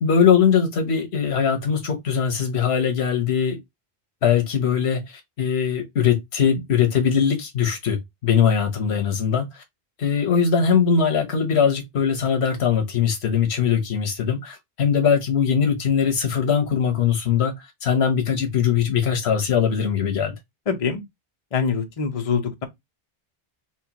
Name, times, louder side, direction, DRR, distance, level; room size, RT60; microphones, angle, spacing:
voice 1, 0.0-3.6 4.2-5.0 5.4-9.6 10.0-17.5 17.8-20.3, left 7 dB, 80° left, 1.2 m, -21 dB
voice 2, 20.7-21.0 21.5-22.6, left 6 dB, 40° left, 0.7 m, -24 dB
4.3 x 2.3 x 2.8 m
omnidirectional pair, 1.1 m